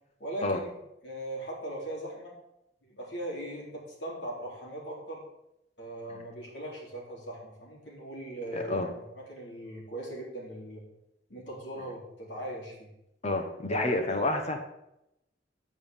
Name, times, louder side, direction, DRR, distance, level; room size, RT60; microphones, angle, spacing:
voice 1, 0.2-0.7 1.0-2.3 2.8-3.7 4.0-5.2 5.8-10.8 11.3-12.9 13.7-14.6, right 1 dB, 75° left, -3 dB, 3.4 m, -39 dB
voice 2, 8.5-8.9 13.2-14.6, left 2 dB, 40° left, 5 dB, 0.9 m, -29 dB
8.5 x 5.3 x 7.1 m, 0.85 s
head